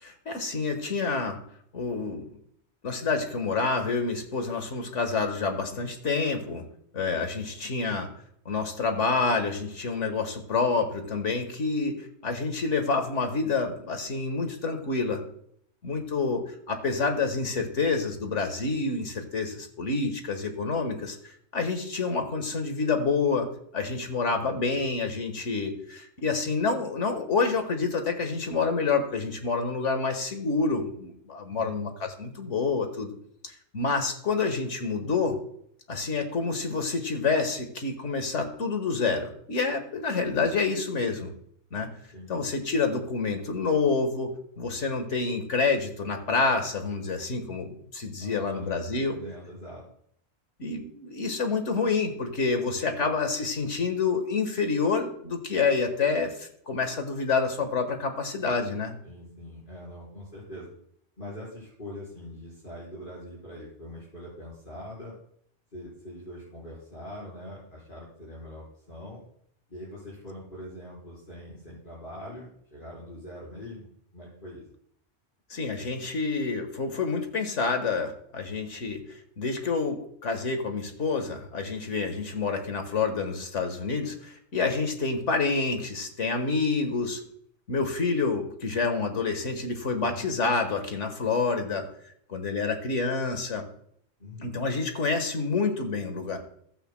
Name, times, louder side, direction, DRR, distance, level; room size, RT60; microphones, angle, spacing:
voice 1, 0.0-1.4 1.7-2.3 2.8-6.6 6.9-8.1 8.5-15.2 15.8-33.1 33.4-35.4 35.9-41.3 41.7-41.9 42.3-49.2 50.6-58.9 75.5-79.0 79.4-87.2 87.7-91.9 92.3-93.7 94.4-96.4, left 4 dB, 75° left, 6 dB, 1.8 m, -28 dB
voice 2, 17.5-17.8 24.4-24.8 31.5-31.8 42.1-42.5 48.2-49.8 52.9-53.0 59.0-60.7 61.2-65.1 65.7-69.2 69.7-74.6 90.0-90.3 94.2-94.5, left 1 dB, 45° left, -8 dB, 4.6 m, -43 dB
15.0 x 12.5 x 2.2 m, 0.67 s
omnidirectional pair, 1.3 m